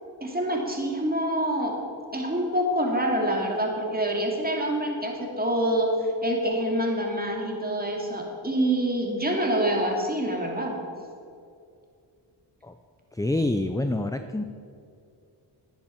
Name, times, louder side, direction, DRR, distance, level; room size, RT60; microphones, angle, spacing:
voice 1, 0.2-1.7 2.1-10.8, right 1 dB, 20° right, 0 dB, 2.8 m, -26 dB
voice 2, 13.1-14.4, left 2 dB, 10° left, 8 dB, 0.5 m, -26 dB
10.5 x 9.9 x 5.9 m, 2.4 s
cardioid pair, 55°, 48 cm